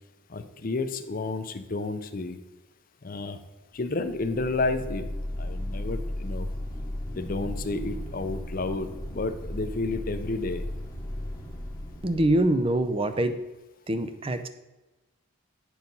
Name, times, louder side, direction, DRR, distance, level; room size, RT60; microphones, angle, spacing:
voice 1, 0.3-2.4 3.0-3.4 3.7-5.0 5.4-6.5 7.1-10.6, left 3 dB, 45° left, 9 dB, 0.6 m, -31 dB
sound 1, 3.9-13.2, left 1 dB, 15° left, 1.1 m, -36 dB
voice 2, 12.0-13.4 13.9-14.5, right 1 dB, 25° right, 10 dB, 0.5 m, -24 dB
9.2 x 4.7 x 5.3 m, 1.1 s
head